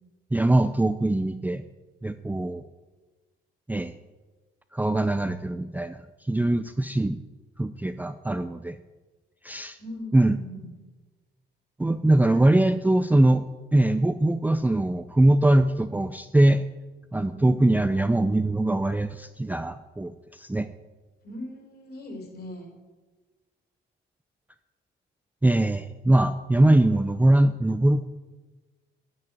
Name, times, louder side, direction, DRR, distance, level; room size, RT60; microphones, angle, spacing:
voice 1, 0.3-1.6 2.0-2.6 3.7-3.9 4.7-6.0 6.3-7.2 7.6-8.8 9.4-9.8 10.1-10.4 11.8-13.4 13.7-16.6 17.1-20.7 25.4-28.0, right 1 dB, 10° right, 9 dB, 0.5 m, -22 dB
voice 2, 9.8-10.6 12.3-13.2 17.3-17.8 21.2-22.7, left 1 dB, 55° left, 1 dB, 4.9 m, -40 dB
10.5 x 9.6 x 9.3 m, 1.3 s
cardioid pair, 90°, 20 cm